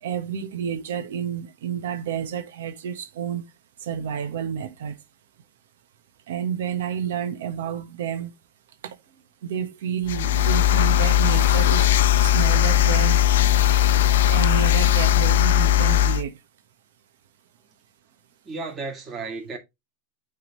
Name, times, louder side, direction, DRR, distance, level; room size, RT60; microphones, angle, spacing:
voice 1, 0.0-3.4 3.8-5.0 6.3-8.3 8.8-9.0 9.4-11.9 12.2-13.2 14.3-16.4, right 9 dB, 80° right, 1.1 m, -30 dB
sound 1, 10.1-16.2, left 11 dB, 85° left, 0.5 m, -18 dB
voice 2, 18.4-19.6, right 3 dB, 15° right, 2.3 m, -34 dB
9.5 x 3.6 x 3.0 m
supercardioid pair, 165°, 0 cm